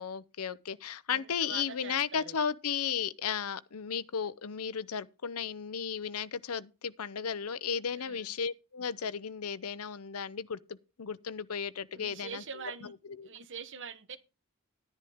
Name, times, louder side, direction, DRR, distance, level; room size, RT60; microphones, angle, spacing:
voice 1, 0.0-12.4 13.2-13.3, left 7 dB, 80° left, 0.7 m, -35 dB
voice 2, 1.1-2.4 7.9-8.3 11.9-12.9 13.2-14.2, right 6 dB, 55° right, 1.2 m, -44 dB
11.5 x 10.5 x 3.6 m
head